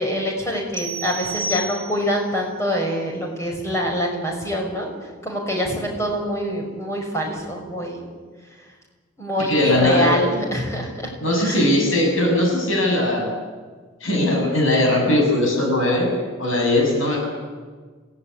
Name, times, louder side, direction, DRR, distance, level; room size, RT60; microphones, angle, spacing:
voice 1, 0.0-4.9 5.2-8.0 9.2-10.9 11.4-11.7, equal, 15° left, 0 dB, 6.0 m, -25 dB
sound 1, 0.7-2.3, right 2 dB, 40° right, 2.9 m, -30 dB
voice 2, 9.5-10.2 11.2-13.4 14.0-17.3, left 1 dB, 75° left, 1 dB, 7.0 m, -19 dB
27.0 x 17.0 x 9.7 m, 1.5 s
head